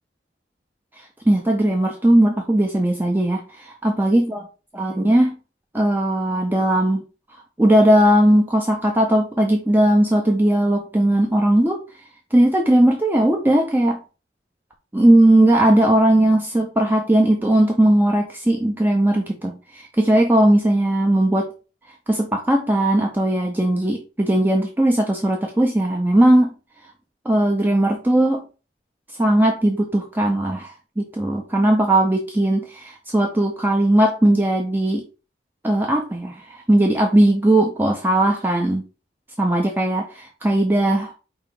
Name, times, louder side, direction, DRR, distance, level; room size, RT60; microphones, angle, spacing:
voice 1, 1.3-4.4 4.7-5.4 5.7-7.0 7.6-11.8 12.3-14.0 14.9-21.5 22.1-26.5 27.3-28.4 29.2-35.0 35.6-38.8 39.4-41.1, right 1 dB, 10° right, 1 dB, 0.5 m, -18 dB
4.6 x 3.0 x 3.7 m, 0.33 s
head